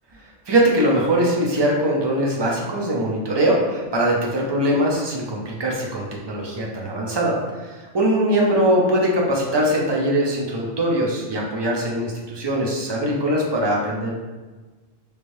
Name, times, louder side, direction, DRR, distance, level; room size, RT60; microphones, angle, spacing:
voice 1, 0.5-7.3 7.6-14.1, right 1 dB, 35° right, -2 dB, 0.4 m, -21 dB
3.2 x 3.1 x 2.6 m, 1.3 s
omnidirectional pair, 1.2 m